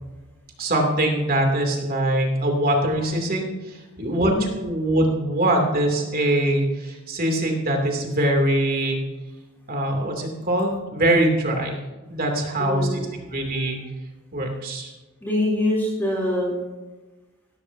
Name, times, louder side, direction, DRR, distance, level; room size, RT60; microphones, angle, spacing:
voice 1, 0.6-9.0 9.7-11.8 12.1-13.0 13.3-13.8 14.3-14.9, right 1 dB, 45° right, 2 dB, 2.7 m, -23 dB
voice 2, 12.6-13.0 15.2-16.5, left 1 dB, 10° left, -4 dB, 3.2 m, -24 dB
17.5 x 13.5 x 2.7 m, 1.2 s
head